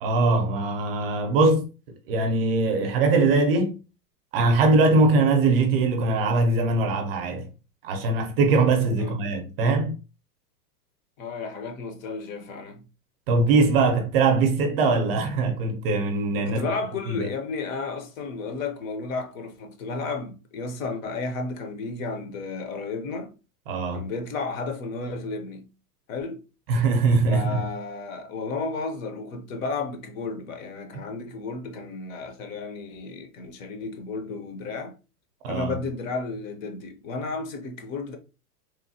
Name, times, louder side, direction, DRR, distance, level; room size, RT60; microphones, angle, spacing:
voice 1, 0.0-1.7 2.1-3.7 4.3-7.5 7.8-10.0 13.3-16.6 17.1-17.3 23.7-24.0 26.7-27.6 35.4-35.8, right 3 dB, 40° right, 0.5 m, -21 dB
voice 2, 11.2-12.9 16.4-23.3 23.9-25.7 26.1-26.4 27.3-34.9 35.5-38.2, left 4 dB, 55° left, 0.8 m, -33 dB
3.1 x 2.0 x 2.7 m
hypercardioid pair, 145°, 47 cm